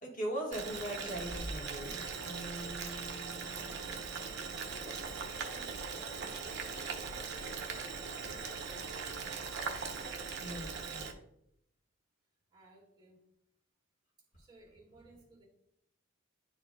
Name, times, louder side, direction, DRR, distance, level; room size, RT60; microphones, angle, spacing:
voice 1, 0.0-2.0 10.4-11.1, right 1 dB, 40° left, -2 dB, 1.5 m, -39 dB
Boiling, 0.5-11.1, right 5 dB, 55° right, 0.7 m, -40 dB
sound 1, 2.2-5.6, right 1 dB, 55° left, 1.7 m, -50 dB
voice 2, 3.4-7.3 7.7-9.3 12.5-13.2 14.4-15.4, right 2 dB, 20° right, -4 dB, 1.9 m, -60 dB
10.5 x 4.4 x 2.3 m, 0.75 s
head